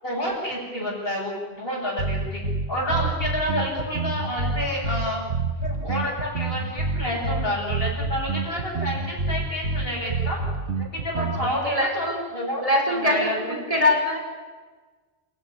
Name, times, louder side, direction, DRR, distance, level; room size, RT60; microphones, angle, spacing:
voice 1, 0.0-5.2 5.6-10.4 10.8-12.1 12.3-13.3 13.7-13.8, left 1 dB, 60° left, -7 dB, 7.3 m, -29 dB
sound 1, 2.0-11.6, right 3 dB, 80° right, 1.8 m, -28 dB
voice 2, 11.6-12.3 12.6-14.2, left 1 dB, 35° right, 2 dB, 5.4 m, -23 dB
28.5 x 17.0 x 10.0 m, 1.3 s
omnidirectional pair, 1.1 m